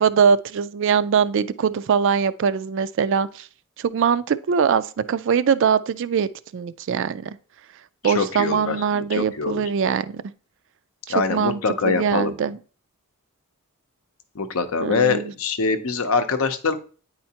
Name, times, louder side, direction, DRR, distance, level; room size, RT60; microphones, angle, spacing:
voice 1, 0.0-3.5 3.8-7.4 8.0-10.2 11.3-12.6 14.8-15.2, right 6 dB, 55° right, 0.3 m, -22 dB
voice 2, 8.0-9.6 11.1-12.3 14.3-16.7, left 4 dB, 70° left, 0.7 m, -24 dB
9.3 x 4.4 x 2.8 m
head